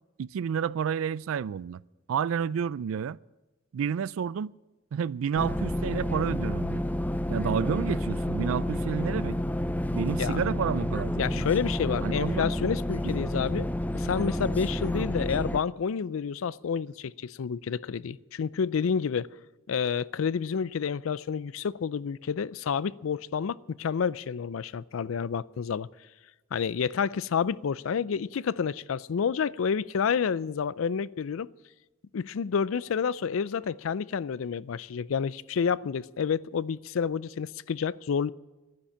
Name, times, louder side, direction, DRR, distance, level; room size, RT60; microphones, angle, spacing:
voice 1, 0.2-1.8 2.1-3.2 3.7-4.5 4.9-6.8 7.3-9.4 9.9-11.4 12.0-12.5 13.0-13.1, right 7 dB, 80° right, 0.3 m, -30 dB
sound 1, 5.4-15.6, left 1 dB, 10° left, 0.4 m, -30 dB
voice 2, 11.2-13.7 13.9-19.3 19.7-25.9 26.5-31.5 32.1-38.3, left 6 dB, 80° left, 0.4 m, -29 dB
11.5 x 10.0 x 8.5 m
head